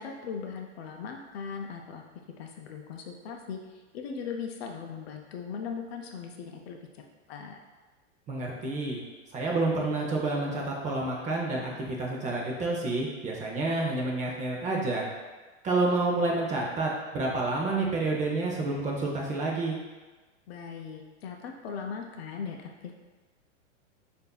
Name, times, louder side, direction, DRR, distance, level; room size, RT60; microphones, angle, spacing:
voice 1, 0.0-2.0 2.4-6.8 7.3-7.6 20.5-22.9, left 6 dB, 55° left, 2 dB, 0.6 m, -39 dB
voice 2, 8.3-9.0 9.3-11.6 11.9-15.0 15.6-19.8, right 2 dB, 20° right, -2 dB, 0.6 m, -29 dB
6.5 x 2.7 x 2.3 m, 1.2 s
hypercardioid pair, 120°, 38 cm